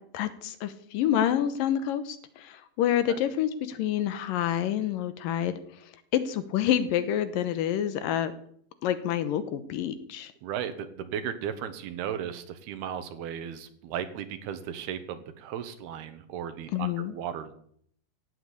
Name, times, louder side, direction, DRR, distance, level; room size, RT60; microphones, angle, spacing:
voice 1, 0.1-5.6 6.1-8.3 8.8-10.3 16.7-17.1, left 10 dB, 70° left, 12 dB, 2.5 m, -28 dB
voice 2, 10.4-17.5, right 9 dB, 90° right, 10 dB, 3.3 m, -35 dB
16.0 x 8.0 x 8.4 m, 0.64 s
omnidirectional pair, 4.4 m